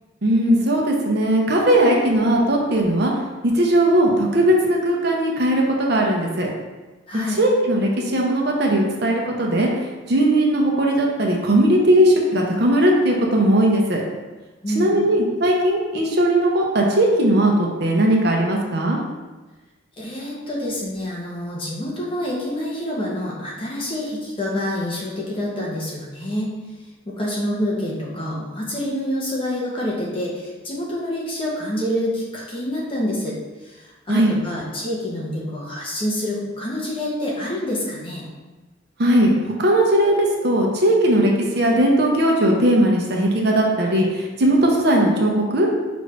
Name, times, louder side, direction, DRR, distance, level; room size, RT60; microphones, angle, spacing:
voice 1, 0.2-3.1 3.4-6.5 7.4-14.0 14.8-19.0 34.1-34.3 39.0-45.7, right 1 dB, 60° right, 0 dB, 0.7 m, -18 dB
voice 2, 7.1-7.4 14.6-14.9 20.0-26.5 27.0-33.4 33.6-38.3, left 1 dB, 30° left, -5 dB, 0.9 m, -27 dB
5.1 x 2.6 x 3.3 m, 1.2 s
head